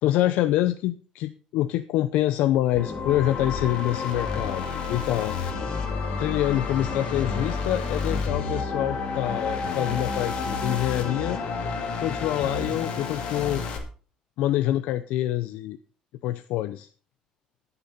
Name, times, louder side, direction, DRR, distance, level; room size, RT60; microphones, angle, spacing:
voice 1, 0.0-5.4 6.2-11.4 12.0-13.6 14.4-15.8 16.2-16.9, left 13 dB, 85° left, 10 dB, 0.6 m, -26 dB
sound 1, 2.7-13.8, left 4 dB, 45° left, 2.3 m, -30 dB
19.0 x 6.9 x 4.2 m, 0.40 s
cardioid pair, 180°, 2 cm